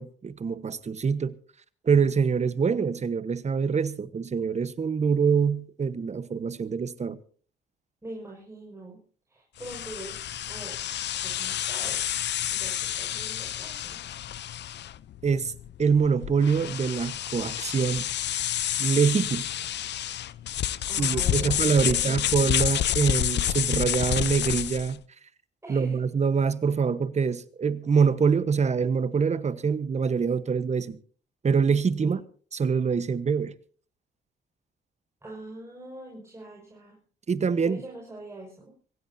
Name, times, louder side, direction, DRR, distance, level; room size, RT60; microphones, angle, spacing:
voice 1, 0.0-1.4 1.8-7.2 15.2-15.5 15.8-18.1 18.8-19.5 21.0-25.0 25.7-31.0 31.4-32.2 32.5-33.5 37.3-37.8, right 6 dB, 35° right, 1.2 m, -25 dB
voice 2, 8.0-9.0 9.3-10.8 11.2-12.0 12.5-14.0 20.9-22.2 25.6-26.0 32.0-32.2 35.2-37.0 37.6-38.7, right 2 dB, 15° right, 5.5 m, -43 dB
sound 1, 9.6-25.0, left 11 dB, 60° left, 0.7 m, -29 dB
25.5 x 16.0 x 2.8 m
cardioid pair, 90°, 20 cm